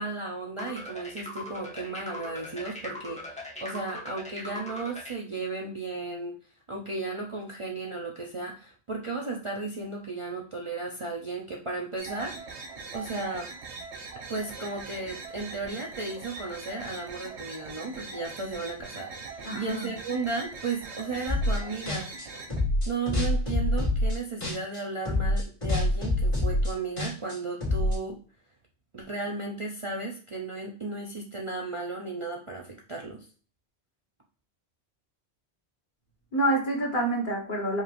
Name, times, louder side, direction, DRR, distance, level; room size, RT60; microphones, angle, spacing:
voice 1, 0.0-6.3 6.7-12.6 12.9-13.5 14.3-22.1 22.9-28.2 28.9-33.2, right 3 dB, 35° right, -1 dB, 0.6 m, -35 dB
sound 1, 0.6-5.2, left 1 dB, 5° left, 1.0 m, -40 dB
sound 2, 12.0-22.6, right 4 dB, 85° right, 1.2 m, -41 dB
voice 2, 19.4-19.9 36.3-37.8, right 1 dB, 50° left, -1 dB, 1.3 m, -27 dB
sound 3, 21.3-21.6 21.9-24.8 25.0-27.9, left 1 dB, 30° left, 2.0 m, -26 dB
5.3 x 3.2 x 2.5 m, 0.40 s
omnidirectional pair, 1.1 m